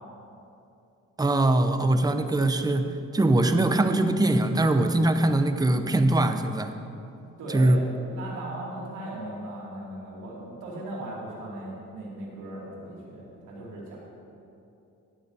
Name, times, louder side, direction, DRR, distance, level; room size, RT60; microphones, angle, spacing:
voice 1, 1.2-6.7 7.5-7.8, right 2 dB, 15° right, 8 dB, 0.7 m, -22 dB
voice 2, 7.4-14.0, right 1 dB, 85° right, -5 dB, 2.5 m, -38 dB
16.0 x 12.0 x 2.7 m, 2.7 s
cardioid pair, 90°, 30 cm